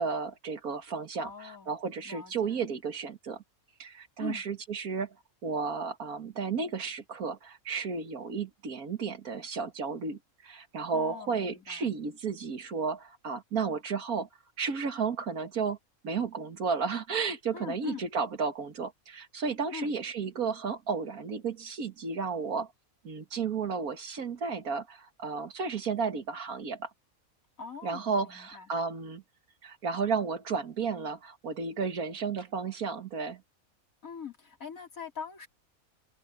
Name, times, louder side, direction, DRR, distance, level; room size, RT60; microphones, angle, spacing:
voice 1, 0.0-3.4 3.8-5.2 5.4-14.3 14.6-15.8 16.0-22.7 23.0-26.9 27.8-29.2 29.6-33.4, right 5 dB, 85° right, 2.2 m, -33 dB
voice 2, 1.1-1.8 2.0-2.6 4.2-4.4 10.9-11.9 17.5-18.1 19.7-19.9 27.6-28.7 34.0-35.5, left 6 dB, 70° left, 3.7 m, -42 dB
open air
omnidirectional pair, 1.5 m